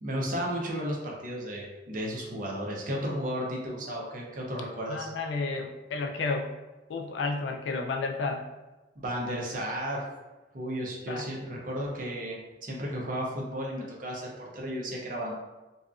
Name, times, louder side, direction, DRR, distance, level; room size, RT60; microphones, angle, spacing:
voice 1, 0.0-5.1 9.0-10.0 10.5-15.3, equal, 50° right, -2 dB, 0.6 m, -34 dB
voice 2, 4.9-6.5 6.9-8.5 11.1-11.3, left 3 dB, 80° left, 3 dB, 0.4 m, -31 dB
2.6 x 2.3 x 2.4 m, 1.1 s
head